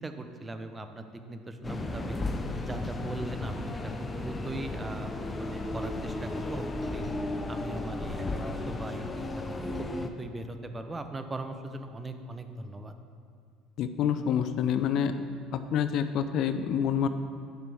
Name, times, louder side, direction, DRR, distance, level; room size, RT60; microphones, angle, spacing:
voice 1, 0.0-2.2 2.6-5.1 5.4-7.0 7.5-9.3 9.8-9.9 10.2-12.9, right 2 dB, 20° right, 7 dB, 0.7 m, -39 dB
sound 1, 1.6-10.1, left 2 dB, 25° left, 0.6 m, -34 dB
voice 2, 13.8-15.1 15.5-17.1, left 8 dB, 60° left, 10 dB, 0.4 m, -27 dB
10.5 x 5.9 x 3.5 m, 2.3 s
hypercardioid pair, 75°, 0 cm